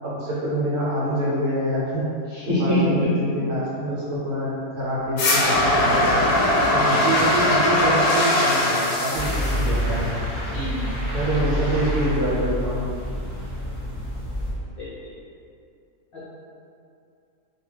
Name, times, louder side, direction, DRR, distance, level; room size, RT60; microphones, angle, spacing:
voice 1, 0.0-2.0 2.6-6.3 6.7-10.1 11.1-12.9, right 1 dB, 75° right, -6 dB, 1.1 m, -26 dB
voice 2, 2.3-3.1 6.8-7.0 10.5-10.9 14.8-14.9 16.1-16.3, equal, 50° left, -12 dB, 0.7 m, -24 dB
sound 1, 5.2-10.2, left 1 dB, 85° left, 1.1 m, -20 dB
sound 2, 9.1-14.5, equal, 5° left, 0.6 m, -27 dB
2.6 x 2.2 x 3.1 m, 2.5 s
omnidirectional pair, 1.6 m